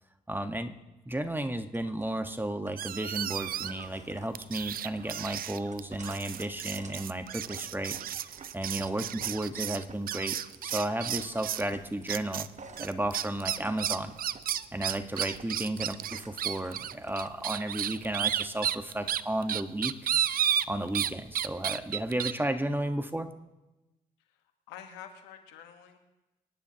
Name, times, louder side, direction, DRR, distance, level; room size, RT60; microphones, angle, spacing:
voice 1, 0.3-0.8 1.0-8.0 8.5-10.4 10.6-12.5 12.8-14.1 14.7-19.9 20.7-23.3, right 1 dB, 10° right, 7 dB, 1.4 m, -33 dB
sound 1, 1.7-2.0 2.7-3.1 3.4-9.3 9.7-10.7 11.2-11.4 11.7-14.4 14.8-17.3, right 5 dB, 45° right, 1.2 m, -51 dB
sound 2, 2.8-3.9 4.3-11.7 12.1-12.5 12.8-21.1 21.4-22.3, right 10 dB, 60° right, 0.5 m, -32 dB
voice 2, 24.2-26.0, left 9 dB, 85° left, 5 dB, 1.4 m, -48 dB
25.0 x 10.0 x 2.9 m, 1.0 s
hypercardioid pair, 45°, 17 cm